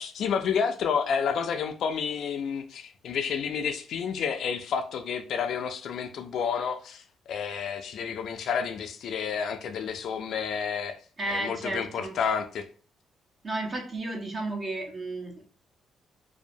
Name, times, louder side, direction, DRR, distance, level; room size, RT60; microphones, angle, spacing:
voice 1, 0.0-11.0 11.3-12.7, left 6 dB, 70° left, 6 dB, 0.3 m, -30 dB
voice 2, 11.2-12.2 13.4-15.4, right 2 dB, 40° right, -1 dB, 0.7 m, -33 dB
2.7 x 2.1 x 2.5 m, 0.42 s
cardioid pair, 90°, 0 cm